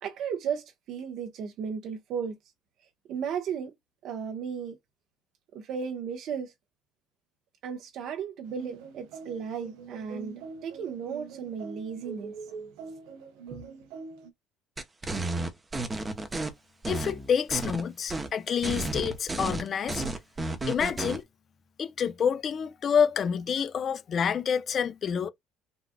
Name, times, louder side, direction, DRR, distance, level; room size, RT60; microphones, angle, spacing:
voice 1, 0.0-2.4 3.1-3.7 4.0-4.8 5.5-6.5 7.6-12.3 13.5-13.6, right 7 dB, 60° right, 0.9 m, -35 dB
sound 1, 8.4-14.3, right 5 dB, 90° right, 1.0 m, -44 dB
sound 2, 14.8-16.5 16.8-17.8 18.1-18.3 18.6-21.2, right 2 dB, 15° right, 0.8 m, -32 dB
voice 2, 16.9-20.0 20.7-21.2 21.8-25.3, left 7 dB, 40° left, 0.5 m, -28 dB
4.0 x 2.4 x 2.2 m
cardioid pair, 115°, 0 cm